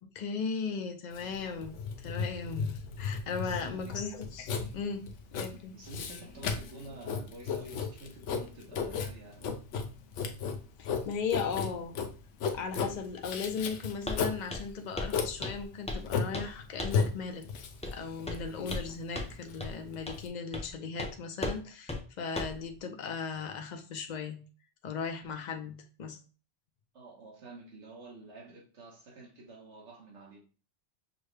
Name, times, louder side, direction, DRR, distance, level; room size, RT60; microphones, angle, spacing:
voice 1, 0.0-5.8 10.8-12.0 12.5-24.5 24.8-26.2, left 5 dB, 50° left, 0.7 m, -37 dB
Writing, 1.1-20.3, left 5 dB, 90° left, 1.0 m, -35 dB
voice 2, 3.4-3.9 5.5-9.5 26.9-30.5, right 2 dB, 75° right, 1.6 m, -49 dB
Walk footsteps, 14.1-14.2 14.5-14.7 15.0-15.1 15.4-16.1 16.3-16.5 16.8-17.0 17.8-18.0 18.3-18.9 19.1-19.3 19.6-19.7 20.1-20.2 20.5-20.7 21.0-21.1 21.4-21.6 21.9-22.0 22.4-22.6, left 2 dB, 10° left, 0.4 m, -36 dB
6.2 x 2.2 x 3.2 m
omnidirectional pair, 1.2 m